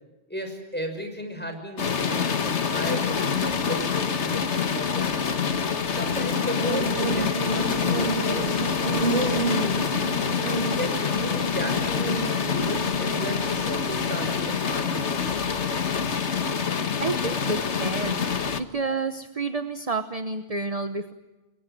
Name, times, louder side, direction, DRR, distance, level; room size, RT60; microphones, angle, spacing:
voice 1, 0.3-2.3 2.7-5.3 5.9-9.9 10.5-15.4, equal, 10° left, 5 dB, 6.0 m, -34 dB
Heavy Rain on Windshield, 1.8-18.6, left 6 dB, 85° left, 1.7 m, -26 dB
Buzz, 6.0-14.1, right 1 dB, 50° right, 6.6 m, -30 dB
voice 2, 17.0-18.3 18.6-21.1, right 3 dB, 35° right, 10 dB, 1.1 m, -29 dB
28.0 x 22.5 x 7.7 m, 1.1 s
omnidirectional pair, 1.1 m